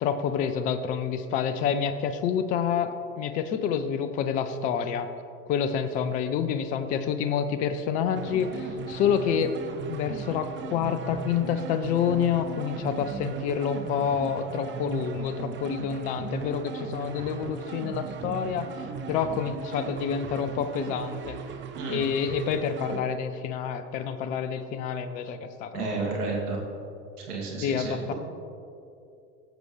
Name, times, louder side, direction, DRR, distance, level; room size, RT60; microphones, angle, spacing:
voice 1, 0.0-5.1 5.5-9.6 9.8-18.7 19.1-21.4 21.9-26.2 27.6-28.1, left 7 dB, 20° left, 10 dB, 0.3 m, -28 dB
sound 1, 8.2-23.0, right 5 dB, 25° right, 0.7 m, -37 dB
voice 2, 25.7-26.6 27.2-28.1, right 3 dB, 80° right, -2 dB, 2.5 m, -31 dB
16.5 x 7.7 x 3.1 m, 2.6 s
hypercardioid pair, 95°, 45 cm